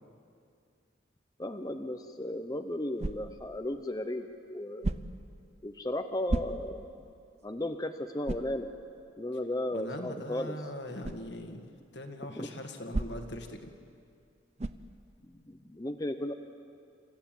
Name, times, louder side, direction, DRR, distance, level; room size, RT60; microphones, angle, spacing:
voice 1, 1.4-4.9 5.6-6.9 7.4-8.7 9.2-10.6 12.4-12.5 15.5-16.3, left 1 dB, 20° left, 6 dB, 0.7 m, -35 dB
sound 1, 3.0-3.5 4.8-5.3 6.3-6.9 7.4-7.5 8.2-8.6 11.0-11.3 12.9-13.4 14.6-14.9, right 2 dB, 35° right, 0.6 m, -34 dB
voice 2, 9.7-11.7 11.9-13.7, left 1 dB, 65° left, 5 dB, 1.8 m, -41 dB
27.5 x 14.5 x 9.1 m, 2.4 s
head